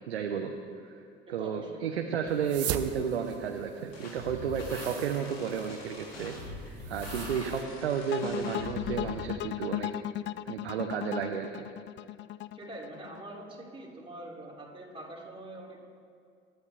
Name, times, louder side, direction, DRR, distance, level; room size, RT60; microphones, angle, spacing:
voice 1, 0.1-0.5 0.8-1.0 1.3-9.9 10.4-11.6, right 7 dB, 80° right, 4 dB, 1.1 m, -32 dB
voice 2, 1.3-2.0 12.5-15.8, right 1 dB, 15° right, -4 dB, 4.6 m, -44 dB
sound 1, 2.3-7.6, right 11 dB, 50° right, 1.1 m, -41 dB
sound 2, 3.9-9.2, left 3 dB, 65° left, 3.0 m, -43 dB
sound 3, 8.1-13.2, left 13 dB, 35° left, 0.5 m, -36 dB
27.5 x 13.5 x 3.4 m, 2.4 s
figure-of-eight pair, 65°, 31 cm